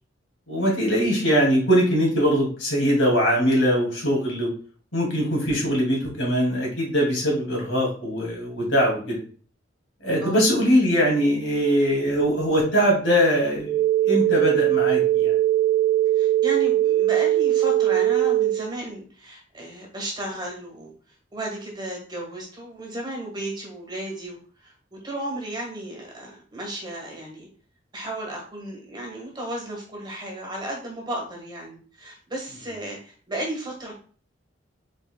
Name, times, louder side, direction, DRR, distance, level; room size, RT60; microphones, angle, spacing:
voice 1, 0.5-4.5 4.9-9.2 10.0-13.8 14.0-15.3, equal, 80° left, -2 dB, 2.2 m, -21 dB
sound 1, 13.6-18.6, right 13 dB, ahead, 0.4 m, -20 dB
voice 2, 16.1-20.9 21.3-27.5 27.9-33.9, right 1 dB, 25° right, -1 dB, 1.4 m, -34 dB
5.0 x 4.3 x 2.2 m, 0.42 s
head